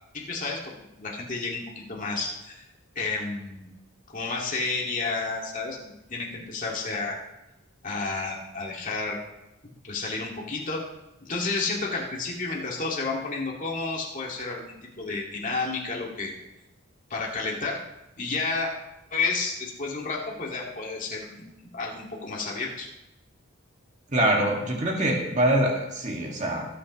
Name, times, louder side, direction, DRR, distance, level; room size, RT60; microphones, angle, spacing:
voice 1, 0.1-0.6 1.0-1.6 1.9-2.6 3.0-3.7 4.1-5.8 6.1-7.2 7.8-9.2 9.8-10.8 11.3-16.3 17.1-17.8 18.2-18.7 19.1-21.4 21.7-22.9, left 3 dB, 40° left, -2 dB, 2.2 m, -31 dB
voice 2, 24.1-26.7, right 1 dB, 35° right, -1 dB, 2.1 m, -24 dB
19.0 x 8.4 x 3.2 m, 0.94 s
head